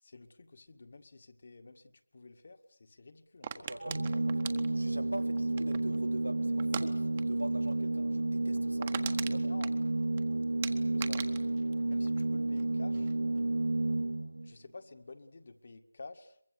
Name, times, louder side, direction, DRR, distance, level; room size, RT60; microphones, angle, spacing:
voice 1, 0.0-3.8 9.5-10.0 10.7-11.3 11.9-13.2 14.4-16.4, left 3 dB, 45° left, 2.0 m, -51 dB
sound 1, 3.4-6.0 6.6-6.9 7.2-7.4 7.7-7.8 8.2-8.3 8.5-10.2 10.6-12.7 12.9-13.4, right 7 dB, 25° right, 1.5 m, -41 dB
voice 2, 3.6-9.5, right 1 dB, 85° right, 3.5 m, -44 dB
Organ, 3.8-14.5, right 2 dB, 65° right, 0.9 m, -31 dB
23.5 x 22.5 x 8.3 m
figure-of-eight pair, 160°, 0 cm